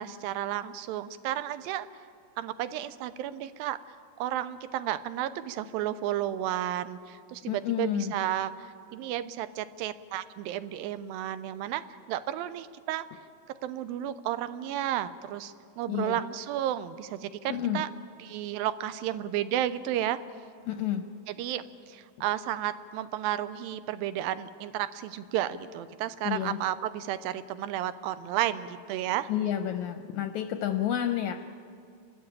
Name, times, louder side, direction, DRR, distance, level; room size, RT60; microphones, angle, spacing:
voice 1, 0.0-1.9 2.4-3.8 4.2-11.8 12.1-13.1 13.6-17.9 18.2-20.2 21.3-29.3, right 12 dB, 90° right, 13 dB, 2.5 m, -32 dB
voice 2, 7.5-8.1 15.9-16.2 17.5-17.9 20.6-21.0 26.2-26.6 29.3-31.4, left 10 dB, 80° left, 7 dB, 1.7 m, -30 dB
30.0 x 13.0 x 8.8 m, 2.3 s
omnidirectional pair, 4.1 m